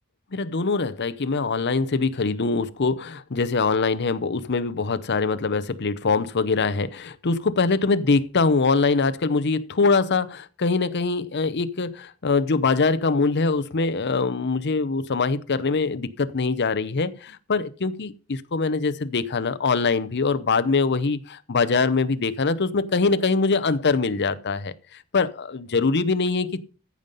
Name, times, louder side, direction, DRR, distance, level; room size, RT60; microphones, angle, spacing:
voice 1, 0.3-26.6, left 4 dB, 50° left, 0.7 m, -23 dB
14.5 x 5.5 x 5.3 m
head